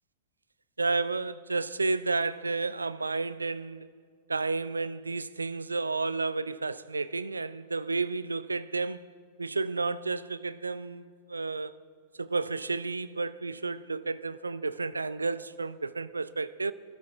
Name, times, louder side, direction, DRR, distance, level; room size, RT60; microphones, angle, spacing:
voice 1, 0.8-3.9 4.3-9.1 9.4-11.7 12.2-16.7, right 3 dB, 80° right, 0.4 m, -31 dB
23.0 x 13.5 x 3.4 m
figure-of-eight pair, 90°, 0 cm